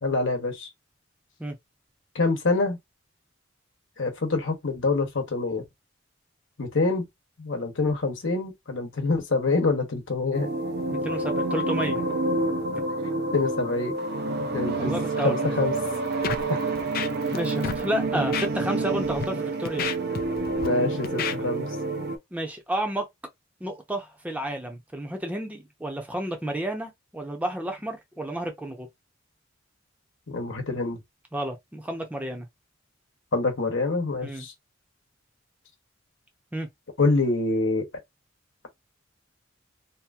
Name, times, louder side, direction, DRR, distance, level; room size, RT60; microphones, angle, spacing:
voice 1, 0.0-0.7 2.1-2.8 4.0-5.6 6.6-7.0 7.4-10.5 13.3-14.0 14.5-14.9 15.2-15.7 16.5-16.7 20.5-21.7 30.3-31.0 33.3-34.5 37.0-37.9, left 3 dB, 75° left, 1.0 m, -26 dB
sound 1, 10.3-22.2, right 2 dB, 55° right, 0.5 m, -28 dB
voice 2, 10.9-12.0 14.8-15.5 17.3-19.9 22.3-23.1 23.6-28.9 31.3-32.5 34.2-34.5 36.5-36.7, right 1 dB, 10° right, 0.7 m, -31 dB
Scratching (performance technique), 16.2-16.4 16.8-17.4 17.6-17.8 18.3-18.5 19.0-19.2 19.7-20.7 21.0-21.4, left 7 dB, 50° left, 0.4 m, -30 dB
2.8 x 2.6 x 2.3 m
head